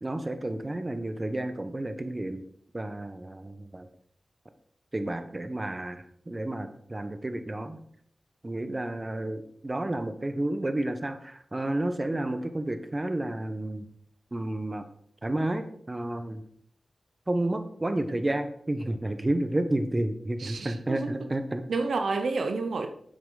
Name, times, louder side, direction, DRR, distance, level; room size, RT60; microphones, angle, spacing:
voice 1, 0.0-2.4 2.7-3.9 4.9-7.8 8.4-13.9 14.3-14.8 15.2-16.4 17.3-21.6, right 1 dB, 30° right, 8 dB, 1.2 m, -31 dB
voice 2, 20.4-21.3 21.7-22.9, right 3 dB, 90° right, 6 dB, 0.8 m, -30 dB
10.5 x 7.9 x 4.1 m, 0.64 s
cardioid pair, 55°, 0 cm